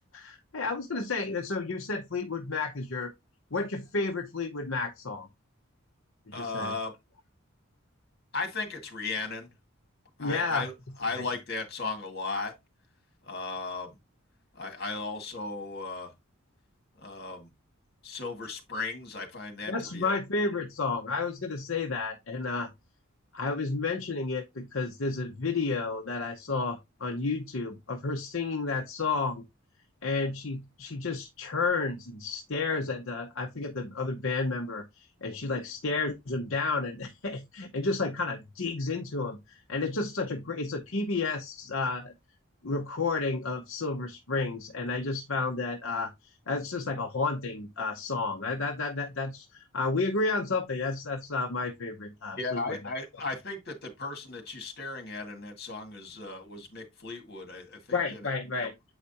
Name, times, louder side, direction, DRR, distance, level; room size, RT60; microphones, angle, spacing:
voice 1, 0.1-3.1 3.5-5.3 6.3-6.7 10.2-10.7 19.7-22.7 23.3-29.4 30.0-42.1 42.6-46.1 46.5-52.8 57.9-58.7, left 3 dB, 65° left, 0.8 m, -31 dB
voice 2, 6.3-6.9 8.3-9.5 10.2-10.7 11.0-12.5 13.2-14.0 14.5-16.1 17.0-17.5 18.0-20.2 52.4-58.3 58.6-58.7, left 3 dB, 50° left, 1.9 m, -36 dB
7.9 x 4.9 x 2.8 m
head